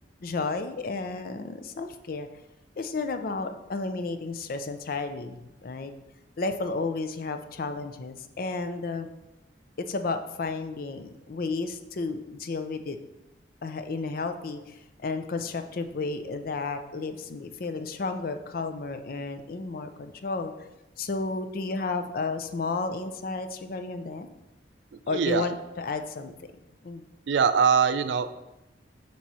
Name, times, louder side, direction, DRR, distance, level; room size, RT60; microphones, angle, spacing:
voice 1, 0.2-2.3 2.8-5.9 6.4-9.1 9.8-13.0 13.6-14.8 15.0-20.5 21.0-24.3 25.1-26.3 26.8-27.0, left 3 dB, 55° left, 8 dB, 0.5 m, -32 dB
voice 2, 27.3-28.3, right 6 dB, 80° right, 11 dB, 0.4 m, -22 dB
7.3 x 3.1 x 5.4 m, 0.97 s
head